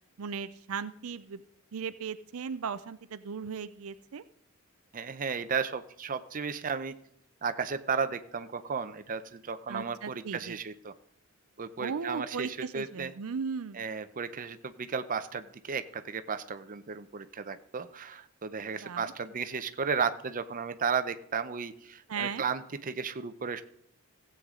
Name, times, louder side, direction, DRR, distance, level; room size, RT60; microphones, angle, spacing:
voice 1, 0.2-1.4 1.7-4.2 9.7-10.6 11.8-13.8 18.6-19.1 22.1-22.4, right 6 dB, 75° right, 13 dB, 0.5 m, -37 dB
voice 2, 4.9-6.9 7.4-10.9 11.6-13.1 13.7-23.6, right 5 dB, 40° right, 10 dB, 0.6 m, -34 dB
16.5 x 7.9 x 3.7 m, 0.73 s
head